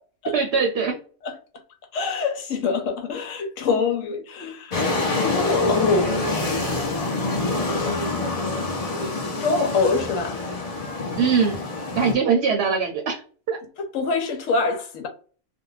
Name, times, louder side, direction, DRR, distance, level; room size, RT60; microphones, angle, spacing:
voice 1, 0.3-1.0 11.2-11.6 12.0-13.2 13.5-13.6, right 5 dB, 65° right, 0.8 m, -21 dB
voice 2, 1.9-4.8 5.2-6.4 7.0-7.1 9.3-10.4 13.8-15.1, left 4 dB, 80° left, 1.1 m, -25 dB
sound 1, 4.7-12.1, left 2 dB, 40° left, 0.6 m, -26 dB
2.4 x 2.2 x 3.1 m
omnidirectional pair, 1.3 m